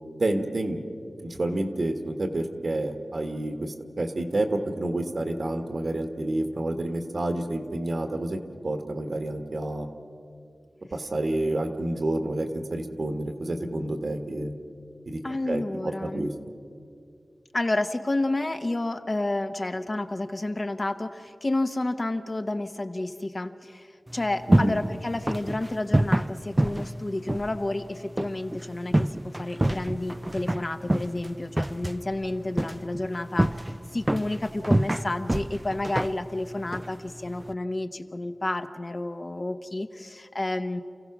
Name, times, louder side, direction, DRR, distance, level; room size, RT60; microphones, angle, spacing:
voice 1, 0.2-0.8 1.2-9.9 10.9-14.5 15.1-15.2 15.5-16.3 24.5-24.8, right 1 dB, 55° right, 6 dB, 1.5 m, -29 dB
voice 2, 15.2-16.3 17.5-40.8, left 2 dB, 35° left, 8 dB, 0.9 m, -30 dB
sound 1, 24.1-37.5, right 1 dB, 15° right, 0.4 m, -28 dB
29.0 x 16.0 x 6.0 m, 2.4 s
wide cardioid pair, 95°, 0 cm